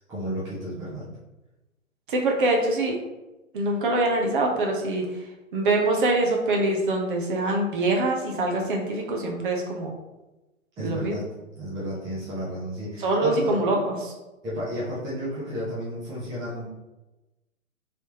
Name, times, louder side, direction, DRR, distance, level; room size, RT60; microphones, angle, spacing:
voice 1, 0.1-1.1 10.8-11.2 11.6-13.6 14.4-16.7, equal, 10° right, -8 dB, 0.6 m, -32 dB
voice 2, 2.1-2.9 3.5-5.0 5.5-9.9 10.8-11.2 13.0-14.1, right 2 dB, 40° right, 1 dB, 0.9 m, -24 dB
4.2 x 3.4 x 2.9 m, 1.0 s
figure-of-eight pair, 130°, 41 cm